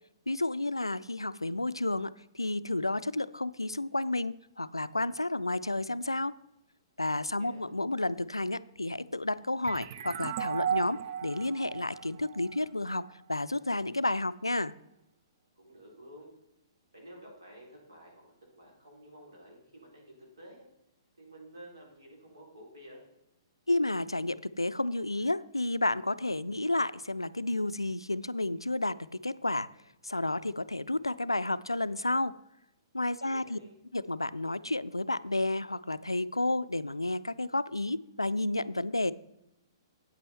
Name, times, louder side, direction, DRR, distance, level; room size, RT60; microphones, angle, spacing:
voice 1, 0.3-6.3 7.0-14.7 23.7-29.0 29.2-29.7 30.0-32.3 32.9-33.6 33.9-39.1, left 2 dB, 90° left, 15 dB, 0.3 m, -31 dB
sound 1, 9.6-13.1, right 9 dB, 50° right, 0.5 m, -35 dB
voice 2, 15.6-16.3 16.9-20.6 21.2-23.0 33.2-33.8, right 1 dB, 70° right, -2 dB, 3.9 m, -51 dB
8.9 x 8.4 x 4.2 m, 0.87 s
figure-of-eight pair, 120°, 2 cm